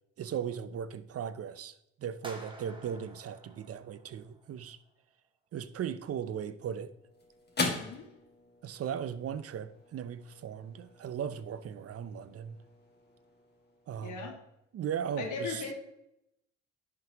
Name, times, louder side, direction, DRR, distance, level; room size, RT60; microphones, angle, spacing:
voice 1, 0.2-4.8 5.5-6.9 8.6-12.6 13.9-14.3 14.7-15.7, right 8 dB, 50° right, 0.6 m, -37 dB
sound 1, 2.2-4.5, right 1 dB, 15° right, 1.6 m, -49 dB
sound 2, 6.3-14.8, left 3 dB, 35° left, 2.1 m, -42 dB
voice 2, 7.7-8.1 14.0-14.4 15.2-15.7, left 4 dB, 80° left, 2.0 m, -38 dB
10.5 x 6.0 x 3.0 m
cardioid pair, 90°, 30 cm